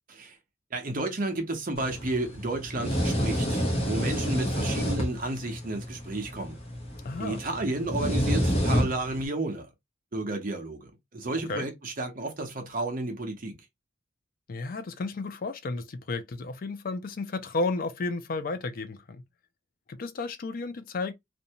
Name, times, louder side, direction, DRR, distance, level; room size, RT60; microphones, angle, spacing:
voice 1, 0.7-6.5 7.2-9.7 10.1-13.6, right 2 dB, 45° right, 0.8 m, -32 dB
sound 1, 1.8-9.3, equal, 35° left, 0.8 m, -29 dB
voice 2, 7.0-7.4 11.5-11.7 14.5-19.2 19.9-21.1, left 3 dB, 50° left, 0.4 m, -32 dB
2.6 x 2.2 x 2.7 m
head